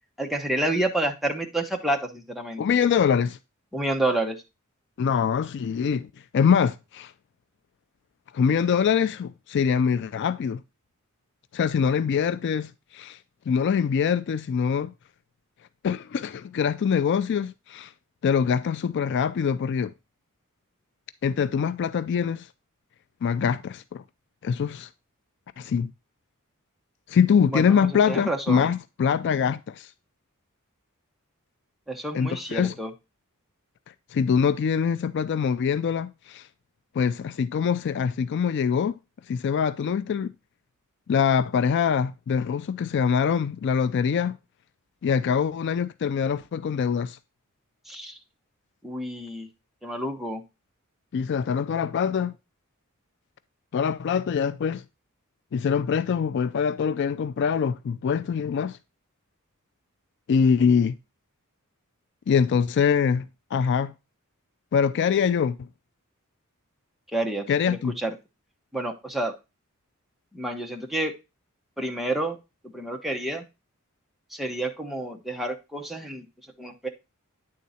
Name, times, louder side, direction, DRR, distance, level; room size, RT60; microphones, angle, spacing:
voice 1, 0.2-2.8 3.7-4.4 27.4-28.7 31.9-32.9 47.8-48.2 48.8-49.5 49.8-50.4 67.1-68.1 68.7-69.3 70.3-71.2 71.8-72.4 72.6-73.5 74.3-76.9, right 1 dB, ahead, 0.9 m, -29 dB
voice 2, 2.6-3.4 5.0-6.1 6.3-7.1 8.3-10.6 11.5-13.2 13.5-14.9 15.8-17.9 18.2-19.9 21.2-22.5 23.2-24.0 24.4-24.9 25.6-25.9 27.1-29.9 32.1-32.7 34.1-36.4 36.9-39.0 39.3-40.3 41.1-44.3 45.0-47.2 51.1-52.3 53.7-54.8 55.5-58.8 60.3-60.9 62.3-63.9 64.7-65.7 67.5-67.9, left 6 dB, 55° left, 0.3 m, -24 dB
9.4 x 3.8 x 4.1 m
head